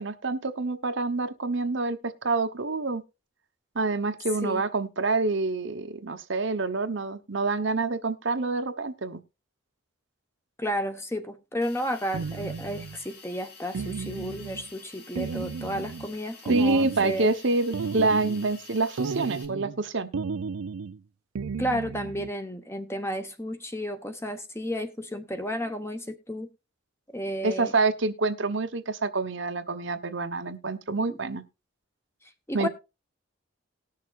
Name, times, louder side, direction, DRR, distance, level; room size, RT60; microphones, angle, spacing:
voice 1, 0.0-3.0 3.7-9.2 16.5-20.1 27.4-31.4 32.5-32.7, right 3 dB, 60° right, 1.0 m, -27 dB
voice 2, 10.6-17.3 21.6-26.5 27.1-27.7 31.1-31.2 32.5-32.7, equal, 10° left, 1.0 m, -32 dB
Hiss, 11.6-19.4, left 4 dB, 50° left, 2.6 m, -49 dB
sound 1, 12.1-13.0 13.7-14.7 15.2-16.1 16.5-17.3 17.7-18.6 19.0-19.8 20.1-21.0 21.4-22.3, right 5 dB, 90° right, 0.5 m, -34 dB
19.0 x 6.6 x 2.4 m
head